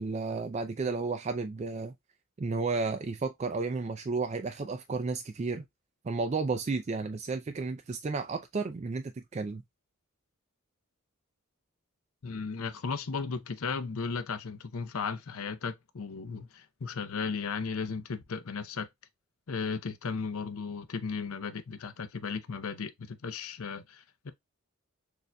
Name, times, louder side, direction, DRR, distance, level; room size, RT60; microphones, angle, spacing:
voice 1, 0.0-1.9 2.4-5.7 6.0-9.6, right 4 dB, 30° right, 0.3 m, -32 dB
voice 2, 12.2-18.9 19.5-24.3, left 5 dB, 70° left, 0.6 m, -35 dB
6.6 x 2.5 x 2.2 m
head